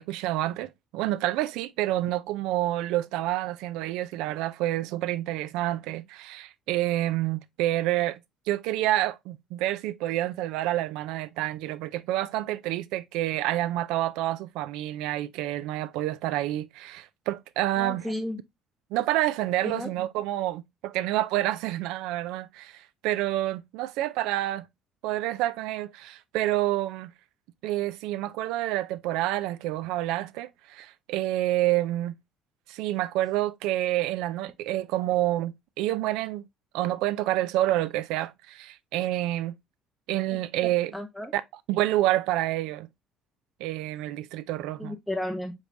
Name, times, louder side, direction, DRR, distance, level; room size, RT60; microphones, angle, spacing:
voice 1, 0.0-8.2 8.5-18.1 18.9-24.7 25.0-27.1 27.6-32.1 32.7-36.4 36.7-39.5 40.1-40.9 41.3-41.4 41.7-42.9 43.6-45.0, right 15 dB, 85° right, 0.3 m, -28 dB
voice 2, 17.8-18.4 19.6-19.9 40.3-40.4 40.9-41.3 44.8-45.5, left 1 dB, 5° left, 0.5 m, -33 dB
5.1 x 3.2 x 2.5 m
cardioid pair, 115°, 0 cm